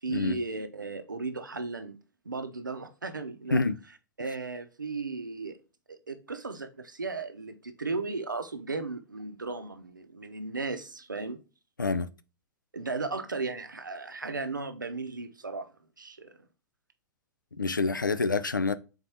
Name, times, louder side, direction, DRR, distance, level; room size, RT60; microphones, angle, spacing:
voice 1, 0.0-2.0 2.3-3.6 4.2-5.6 5.9-11.4 12.7-15.7 16.0-16.3, right 3 dB, 85° right, 0.6 m, -35 dB
voice 2, 11.8-12.1 17.6-18.8, left 3 dB, 90° left, 0.4 m, -27 dB
4.0 x 3.9 x 2.7 m
figure-of-eight pair, 95°, 10 cm